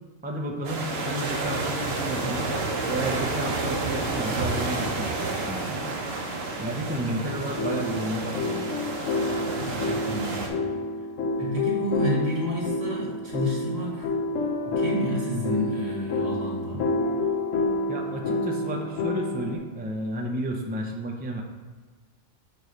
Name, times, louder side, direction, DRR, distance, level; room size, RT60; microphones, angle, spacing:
voice 1, 0.2-2.5 2.9-5.8 6.6-8.7 12.1-12.3 17.9-21.4, right 1 dB, 15° right, 1 dB, 0.4 m, -32 dB
sound 1, 0.6-10.5, right 3 dB, 60° right, 1.1 m, -30 dB
sound 2, 7.3-19.6, left 2 dB, 85° left, 1.1 m, -29 dB
voice 2, 9.6-10.6 11.4-14.2 14.6-16.9, equal, 75° right, -3 dB, 2.0 m, -30 dB
6.8 x 3.1 x 5.1 m, 1.4 s
omnidirectional pair, 1.3 m